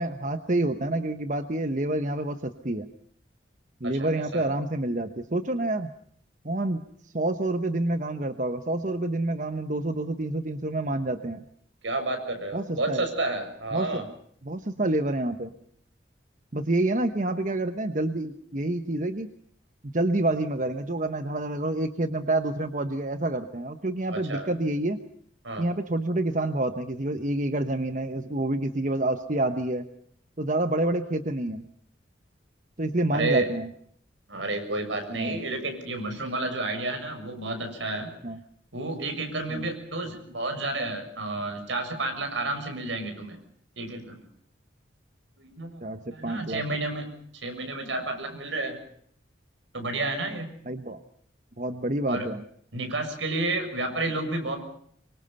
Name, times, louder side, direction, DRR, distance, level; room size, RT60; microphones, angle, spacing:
voice 1, 0.0-2.9 3.8-5.9 6.4-6.8 7.1-11.4 12.5-13.0 13.7-14.1 14.4-15.5 16.5-19.3 19.9-25.0 25.6-29.9 30.4-31.6 32.8-33.7 35.1-35.4 38.2-38.4 39.5-39.7 45.8-46.6 50.7-51.0 51.6-52.4, right 2 dB, 40° right, 9 dB, 1.1 m, -28 dB
voice 2, 3.8-4.5 11.8-14.0 24.1-24.5 25.4-25.7 33.1-33.5 34.3-38.1 38.7-43.4 43.8-44.2 45.4-45.8 46.1-47.1 47.3-48.8 49.7-50.5 52.1-52.3 52.7-54.6, right 2 dB, 80° right, 6 dB, 6.7 m, -31 dB
25.5 x 24.5 x 5.6 m, 0.63 s
head